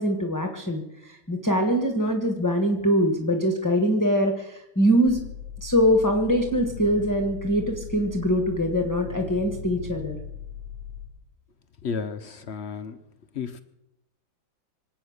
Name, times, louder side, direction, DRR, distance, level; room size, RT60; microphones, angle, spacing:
voice 1, 0.0-5.2 5.6-10.2, equal, 10° left, 4 dB, 1.1 m, -23 dB
sound 1, 5.0-11.0, left 7 dB, 75° right, 4.8 m, -39 dB
voice 2, 11.8-13.0 13.4-13.6, left 5 dB, 70° left, 10 dB, 0.6 m, -32 dB
25.5 x 8.7 x 6.5 m, 0.91 s
omnidirectional pair, 2.1 m